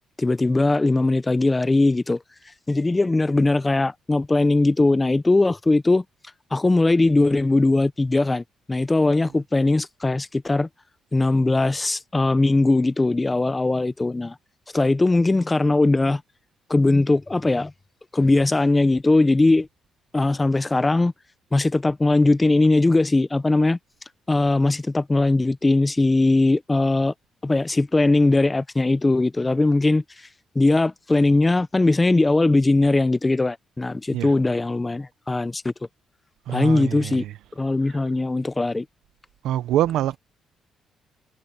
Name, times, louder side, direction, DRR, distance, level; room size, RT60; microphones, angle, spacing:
voice 1, 0.2-2.2 2.7-6.0 6.5-10.7 11.1-14.3 14.7-16.2 16.7-17.7 18.1-19.7 20.1-21.1 21.5-23.8 24.3-27.1 27.4-30.0 30.5-35.7 36.5-37.2 37.6-38.8, left 2 dB, 20° left, 0.8 m, -20 dB
voice 2, 36.5-37.3 39.4-40.2, right 12 dB, 85° right, 1.1 m, -25 dB
cardioid pair, 90°, 0 cm